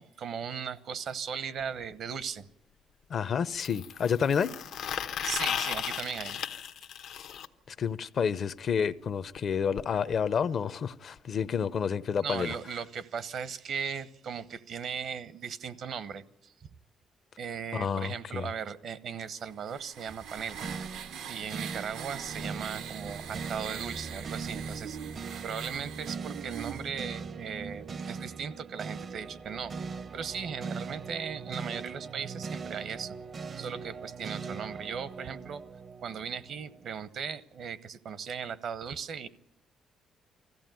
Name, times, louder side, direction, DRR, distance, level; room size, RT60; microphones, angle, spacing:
voice 1, 0.0-2.5 5.2-6.4 12.2-16.5 17.4-20.7 21.2-25.0 25.4-29.7 30.1-33.2 33.6-35.6 36.0-39.3, right 7 dB, 65° right, 0.9 m, -37 dB
sound 1, 1.6-1.7 3.6-7.5 9.4-9.5 9.8-9.9 10.1-10.3 11.2-11.3, left 9 dB, 85° left, 1.0 m, -35 dB
voice 2, 3.1-4.5 7.8-12.5 17.7-18.5, left 7 dB, 55° left, 0.7 m, -29 dB
sound 2, 19.4-26.9, right 8 dB, 90° right, 0.9 m, -42 dB
sound 3, 20.6-36.9, right 5 dB, 45° right, 0.6 m, -40 dB
20.5 x 15.0 x 9.2 m
cardioid pair, 90°, 0 cm